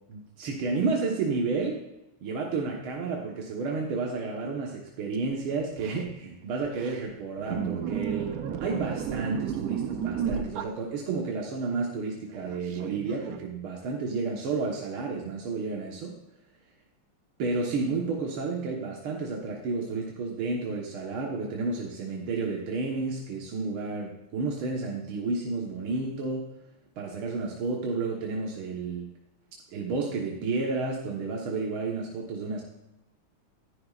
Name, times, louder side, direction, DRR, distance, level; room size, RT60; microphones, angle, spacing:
voice 1, 0.1-1.8 2.2-8.4 8.6-16.1 17.4-26.5 27.0-29.1 29.7-32.6, right 4 dB, 80° right, -1 dB, 2.2 m, -31 dB
sound 1, 5.3-5.4 5.6-6.1 6.6-7.1 7.4-11.2 12.3-13.4, right 8 dB, 60° right, 1.0 m, -33 dB
14.0 x 11.5 x 2.5 m, 0.91 s
omnidirectional pair, 2.3 m